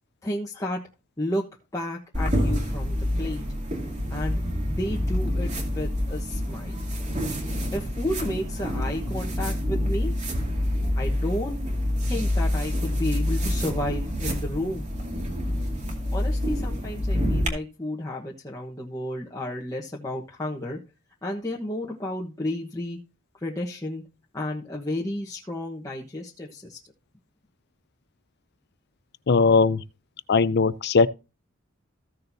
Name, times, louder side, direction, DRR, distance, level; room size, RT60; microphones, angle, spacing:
voice 1, 0.2-0.8 1.2-1.5 1.7-3.4 4.1-6.7 7.7-10.1 10.9-11.6 12.0-14.9 16.1-20.8 21.2-23.0 23.4-24.0 24.3-26.8, left 1 dB, 15° left, 1.2 m, -32 dB
sound 1, 2.1-17.5, left 1 dB, 35° right, 2.3 m, -27 dB
voice 2, 29.3-29.8 30.3-31.1, left 4 dB, 55° left, 0.5 m, -19 dB
15.5 x 6.7 x 2.7 m
head